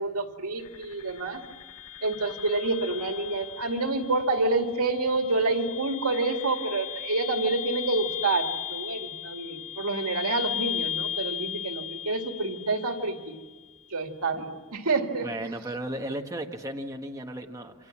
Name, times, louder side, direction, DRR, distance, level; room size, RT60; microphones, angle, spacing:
voice 1, 0.0-1.4 2.0-13.4 13.9-15.3, right 3 dB, 85° right, 4 dB, 2.3 m, -28 dB
sound 1, 0.6-13.6, left 10 dB, 85° left, 0.7 m, -37 dB
voice 2, 15.2-17.9, right 1 dB, 15° right, 2 dB, 1.4 m, -35 dB
28.0 x 25.0 x 7.4 m, 1.3 s
head